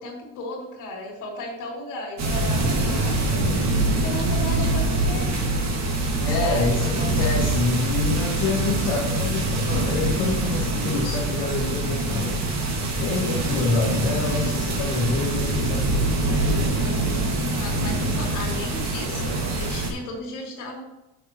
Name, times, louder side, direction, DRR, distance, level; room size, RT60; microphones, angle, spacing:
voice 1, 0.0-3.4 3.9-5.4 6.4-6.9 16.2-20.8, left 1 dB, 45° left, -1 dB, 3.1 m, -35 dB
sound 1, 2.2-19.9, right 2 dB, 35° right, 2.0 m, -24 dB
voice 2, 6.2-12.3 13.0-16.1, left 3 dB, 65° left, -2 dB, 2.5 m, -27 dB
13.0 x 6.9 x 3.0 m, 1.0 s
cardioid pair, 150°, 44 cm